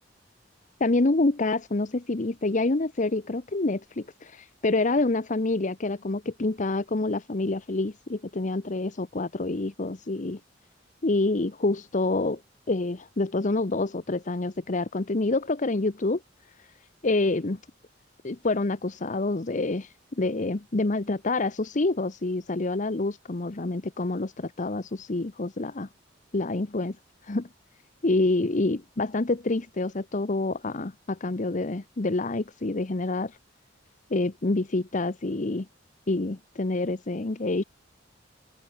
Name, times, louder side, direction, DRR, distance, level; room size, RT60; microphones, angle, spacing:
voice 1, 0.8-10.4 11.0-12.4 12.7-16.2 16.6-16.7 17.0-17.6 18.2-25.9 26.3-27.0 27.2-27.5 28.0-33.4 34.1-35.7 36.1-37.6, left 2 dB, 45° left, 0.9 m, -27 dB
open air
head